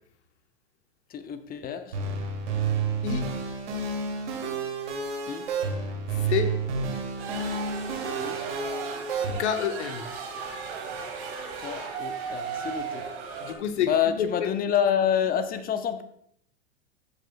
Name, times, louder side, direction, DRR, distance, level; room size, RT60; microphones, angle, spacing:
voice 1, 1.1-2.0 5.2-5.5 8.1-8.4 11.6-13.1 13.8-16.0, left 8 dB, 25° left, 10 dB, 0.8 m, -28 dB
sound 1, 1.9-9.3, right 4 dB, 75° right, 2.5 m, -30 dB
sound 2, 7.2-13.5, right 6 dB, 55° right, 2.4 m, -36 dB
voice 2, 9.4-10.1 13.4-14.5, left 8 dB, 70° left, 8 dB, 1.2 m, -28 dB
13.5 x 8.2 x 2.2 m, 0.68 s
hypercardioid pair, 100°, 36 cm